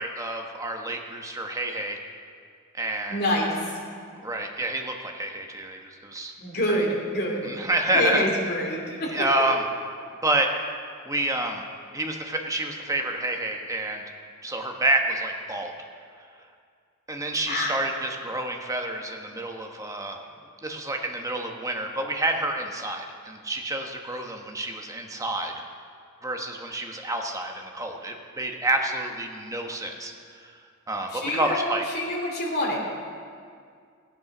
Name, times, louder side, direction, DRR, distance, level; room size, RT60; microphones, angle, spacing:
voice 1, 0.0-2.0 2.7-3.2 4.2-6.3 6.7-6.8 7.4-8.2 9.1-9.6 10.2-10.5 11.0-11.6 11.9-14.0 14.4-15.7 16.2-16.3 17.1-20.2 20.6-25.5 26.2-30.6 30.9-31.8, right 2 dB, 15° right, 3 dB, 1.1 m, -28 dB
voice 2, 3.1-3.8 6.4-7.5 7.9-9.3 17.5-17.7 31.1-32.8, left 1 dB, 50° left, -2 dB, 2.8 m, -27 dB
15.0 x 8.8 x 6.0 m, 2.2 s
head